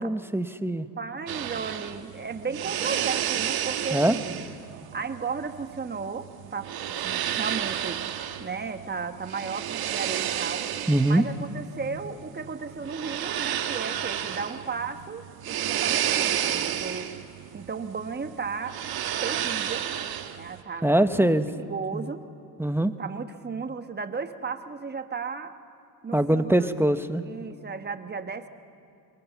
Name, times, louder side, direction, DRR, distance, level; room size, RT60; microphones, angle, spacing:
voice 1, 0.0-0.9 3.9-4.2 10.9-11.2 20.8-21.5 21.9-22.1 22.6-22.9 26.1-27.2, right 1 dB, 5° right, 10 dB, 0.8 m, -23 dB
voice 2, 1.0-4.4 4.9-8.0 8.4-10.6 11.0-17.1 17.5-18.8 19.2-19.8 20.4-21.3 21.6-22.3 23.0-25.6 26.0-26.7 27.2-28.5, right 5 dB, 25° right, 8 dB, 1.2 m, -35 dB
sound 1, 1.3-20.6, right 10 dB, 70° right, 1.4 m, -31 dB
24.5 x 23.5 x 7.1 m, 2.5 s
cardioid pair, 100°, 38 cm